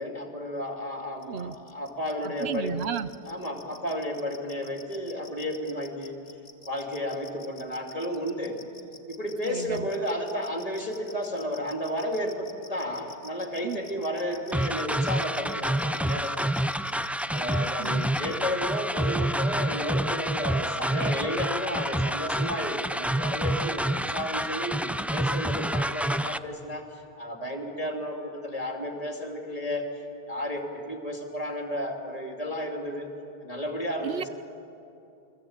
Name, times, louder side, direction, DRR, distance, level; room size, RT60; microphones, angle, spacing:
voice 1, 0.0-2.8 3.3-6.2 6.6-8.6 9.1-16.5 17.3-30.0 30.3-33.1 33.4-34.3, equal, 35° left, 2 dB, 3.1 m, -32 dB
sound 1, 1.2-18.4, left 4 dB, 70° left, 2.2 m, -48 dB
voice 2, 2.2-3.1 9.4-9.9 13.6-13.8 17.5-17.6 17.8-18.1 34.0-34.2, right 7 dB, 85° right, 14 dB, 1.1 m, -33 dB
sound 2, 14.5-26.4, right 1 dB, ahead, 0.4 m, -28 dB
29.0 x 22.5 x 9.0 m, 2.8 s
omnidirectional pair, 1.0 m